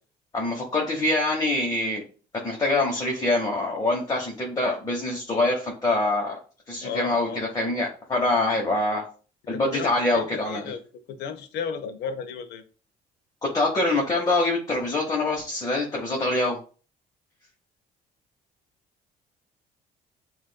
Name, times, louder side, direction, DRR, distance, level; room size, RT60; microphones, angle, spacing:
voice 1, 0.3-2.0 2.3-6.4 6.7-9.0 9.5-10.6 13.5-16.6, left 2 dB, 20° left, 1.1 m, -25 dB
voice 2, 6.8-7.5 9.5-10.8 11.1-12.6, left 7 dB, 80° left, 0.7 m, -34 dB
7.4 x 2.5 x 2.3 m
cardioid pair, 110°, 17 cm